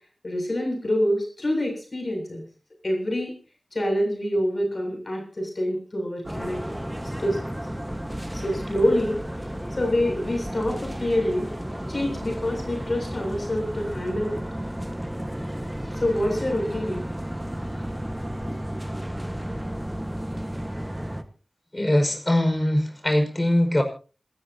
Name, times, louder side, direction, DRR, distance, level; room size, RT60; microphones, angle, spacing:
voice 1, 0.2-2.4 2.8-3.3 3.7-6.8 7.2-7.4 8.3-9.2 9.8-11.5 11.9-14.4 15.9-17.0, left 1 dB, 50° left, 2 dB, 7.6 m, -26 dB
sound 1, 6.2-21.2, equal, 10° right, 1.6 m, -33 dB
voice 2, 21.7-23.8, left 1 dB, 25° left, 5 dB, 5.6 m, -22 dB
27.5 x 13.5 x 2.9 m, 0.37 s
wide cardioid pair, 65°, 0 cm